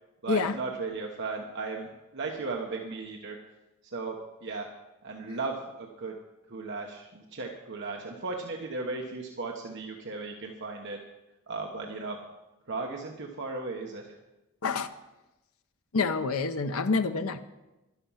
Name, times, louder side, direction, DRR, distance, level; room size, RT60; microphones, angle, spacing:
voice 1, 0.2-3.4 3.9-4.7 5.0-6.1 6.5-11.0 11.5-12.2 12.7-14.0, right 3 dB, 55° right, 1 dB, 1.1 m, -36 dB
voice 2, 15.9-17.4, left 4 dB, 70° left, 9 dB, 0.7 m, -27 dB
12.0 x 11.5 x 5.7 m, 1.0 s
head